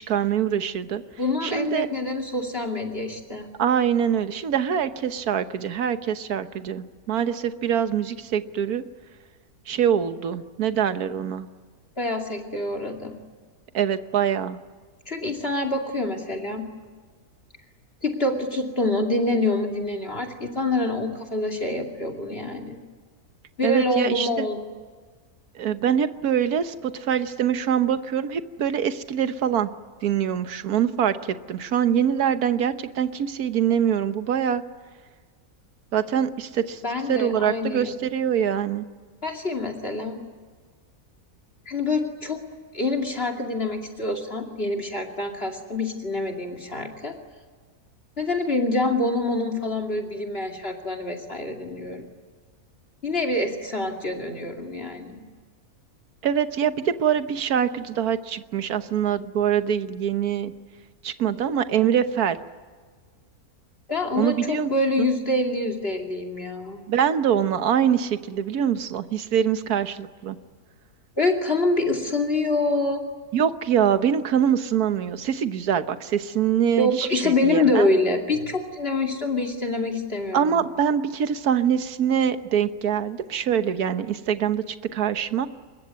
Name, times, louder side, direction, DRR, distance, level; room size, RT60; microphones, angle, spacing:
voice 1, 0.0-1.0 1.4-1.9 3.6-8.8 9.7-11.5 13.7-14.6 23.6-24.5 25.6-29.7 30.0-34.6 35.9-36.8 37.1-38.9 56.2-60.5 61.0-62.4 64.2-64.7 65.0-65.1 66.9-70.4 73.3-77.9 80.3-85.5, right 8 dB, 75° right, 10 dB, 1.6 m, -24 dB
voice 2, 1.2-3.5 12.0-13.1 15.1-16.6 18.0-22.8 23.6-24.6 36.8-37.9 39.2-40.2 41.7-42.4 42.7-47.1 48.2-52.1 53.0-55.2 63.9-66.8 71.2-73.0 76.8-80.6, left 2 dB, 40° left, 7 dB, 2.8 m, -26 dB
25.0 x 22.0 x 9.5 m, 1.6 s
omnidirectional pair, 1.6 m